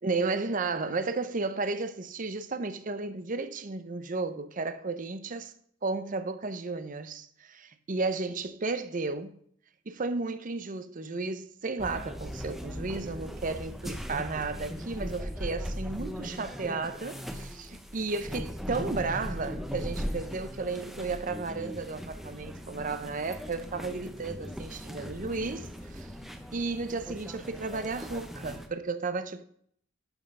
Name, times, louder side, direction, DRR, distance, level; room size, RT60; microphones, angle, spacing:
voice 1, 0.0-5.5 5.8-9.4 9.9-26.1 26.5-29.4, right 3 dB, 40° right, 0.7 m, -33 dB
sound 1, 11.8-28.7, equal, ahead, 0.7 m, -39 dB
11.0 x 5.5 x 5.4 m
head